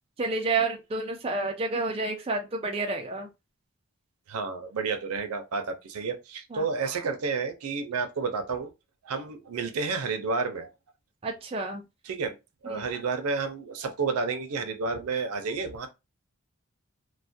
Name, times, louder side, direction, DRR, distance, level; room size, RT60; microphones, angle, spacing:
voice 1, 0.2-3.3 6.5-6.7 11.2-11.8 12.7-12.9, right 3 dB, 25° right, 0.4 m, -30 dB
voice 2, 4.3-8.7 9.0-10.7 12.0-12.4 12.6-15.9, right 4 dB, 90° right, 0.5 m, -30 dB
2.3 x 2.1 x 2.6 m
head